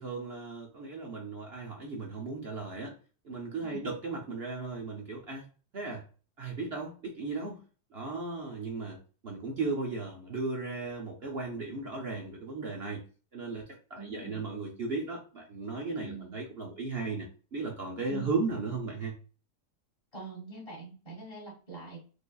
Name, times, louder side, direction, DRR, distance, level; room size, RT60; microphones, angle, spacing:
voice 1, 0.0-2.9 3.2-5.4 5.7-6.0 6.4-7.6 7.9-9.0 9.2-13.0 13.3-19.2, right 3 dB, 55° right, -1 dB, 0.7 m, -36 dB
voice 2, 3.6-3.9 14.0-14.4 16.0-16.4 18.1-18.4 20.1-22.0, right 4 dB, 20° left, -3 dB, 1.9 m, -44 dB
4.7 x 2.7 x 2.3 m, 0.36 s
omnidirectional pair, 1.8 m